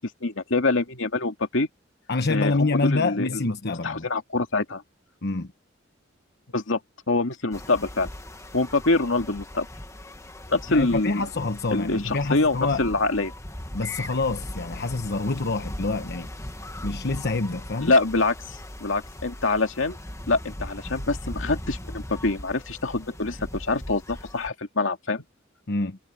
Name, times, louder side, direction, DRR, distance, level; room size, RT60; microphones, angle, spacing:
voice 1, 0.2-1.7 2.3-4.8 6.5-6.8 7.1-8.1 8.5-9.7 10.5-11.2 11.7-13.3 17.8-20.0 20.3-25.2, left 3 dB, 80° left, 2.4 m, -25 dB
voice 2, 2.1-4.0 5.2-5.5 10.7-12.8 13.7-16.3 16.8-17.9 25.7-26.0, left 3 dB, 55° left, 1.1 m, -26 dB
sound 1, 7.5-24.5, left 1 dB, 15° left, 1.6 m, -39 dB
head